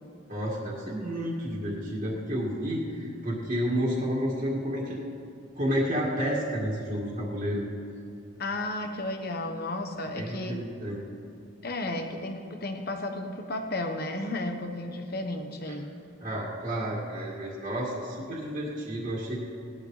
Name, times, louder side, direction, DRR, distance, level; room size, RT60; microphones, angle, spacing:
voice 1, 0.3-5.0 5.6-7.6 10.2-11.0 15.7-15.8 16.2-19.4, equal, 35° right, -5 dB, 2.0 m, -30 dB
voice 2, 8.4-10.6 11.6-15.9, left 2 dB, 50° left, 5 dB, 1.1 m, -33 dB
18.0 x 11.5 x 3.2 m, 2.7 s
head